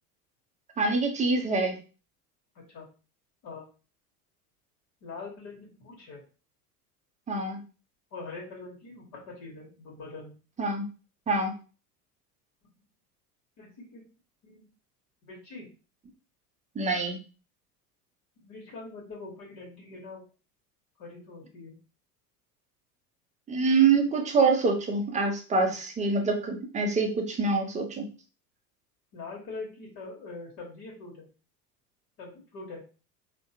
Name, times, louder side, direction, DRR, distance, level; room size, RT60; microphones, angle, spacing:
voice 1, 0.8-1.8 7.3-7.6 10.6-10.9 11.3-11.5 16.8-17.2 23.5-28.1, right 4 dB, 15° right, 4 dB, 0.6 m, -25 dB
voice 2, 5.0-6.2 8.1-10.4 13.6-14.0 14.4-14.7 15.2-15.7 18.4-20.2 21.0-21.8 25.6-25.8 29.1-31.3 32.2-32.8, left 3 dB, 50° left, -2 dB, 1.2 m, -43 dB
3.4 x 2.2 x 2.7 m, 0.35 s
hypercardioid pair, 80°, 47 cm